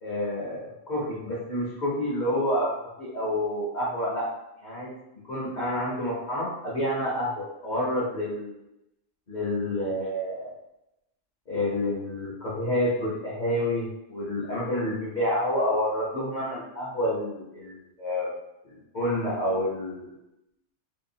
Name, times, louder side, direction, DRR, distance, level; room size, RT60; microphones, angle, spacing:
voice 1, 0.0-2.7 3.0-4.3 4.6-4.9 5.3-8.6 9.3-10.5 11.5-18.3 18.9-20.1, left 1 dB, 45° left, -6 dB, 0.8 m, -28 dB
2.7 x 2.3 x 2.6 m, 0.89 s
omnidirectional pair, 1.3 m